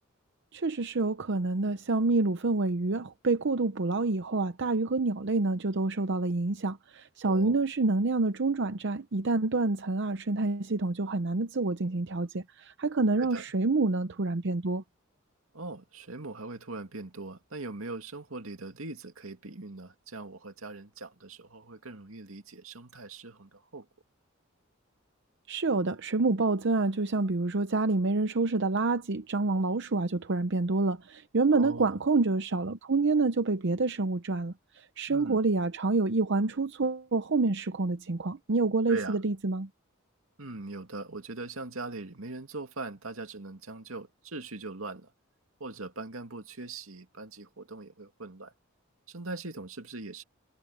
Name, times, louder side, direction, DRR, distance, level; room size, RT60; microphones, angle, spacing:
voice 1, 0.5-14.8 25.5-39.7, right 3 dB, 60° right, 0.7 m, -27 dB
voice 2, 7.2-7.6 13.2-13.4 15.5-23.9 31.5-32.0 35.1-35.4 38.9-39.2 40.4-45.1 45.6-48.5 49.1-50.2, right 3 dB, 80° right, 2.4 m, -41 dB
head